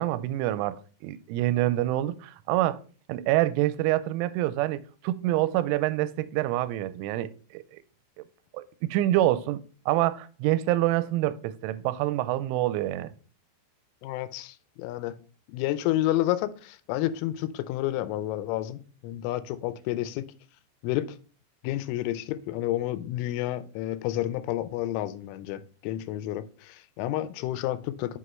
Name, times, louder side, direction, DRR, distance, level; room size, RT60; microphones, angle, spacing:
voice 1, 0.0-2.8 3.1-7.6 8.5-8.7 8.9-9.6 9.9-13.1, right 15 dB, 85° right, 3.0 m, -26 dB
voice 2, 14.0-15.2 15.5-20.3 20.8-21.2 21.6-28.2, left 14 dB, 85° left, 3.1 m, -30 dB
7.7 x 5.8 x 3.1 m
omnidirectional pair, 5.7 m